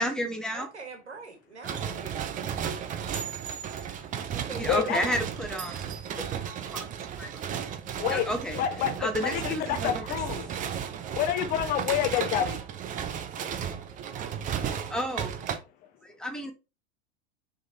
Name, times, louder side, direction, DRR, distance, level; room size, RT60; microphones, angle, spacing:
voice 1, 0.0-0.7 4.6-6.2 6.7-6.8 7.2-7.4 8.1-8.6 9.0-10.0 14.9-15.4 16.0-16.5, equal, ahead, 1.3 m, -31 dB
voice 2, 0.5-2.4 4.3-5.2, right 4 dB, 75° right, 1.6 m, -43 dB
sound 1, 1.6-15.6, right 8 dB, 25° right, 0.8 m, -34 dB
voice 3, 4.7-5.1 8.0-8.3 8.5-10.5 11.1-12.6, left 11 dB, 25° left, 0.5 m, -28 dB
6.4 x 3.7 x 4.2 m
figure-of-eight pair, 90°, 34 cm